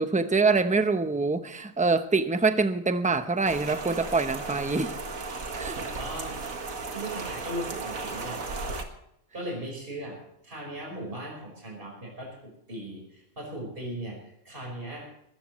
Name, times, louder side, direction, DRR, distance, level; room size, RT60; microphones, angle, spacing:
voice 1, 0.0-4.9 5.6-5.8, right 4 dB, 5° right, 0.7 m, -25 dB
Rain, 3.5-8.8, right 3 dB, 80° right, 2.1 m, -35 dB
voice 2, 5.8-6.4 6.9-8.4 9.3-10.2 10.4-15.1, right 1 dB, 40° right, 5.3 m, -38 dB
20.5 x 14.5 x 3.1 m
omnidirectional pair, 1.4 m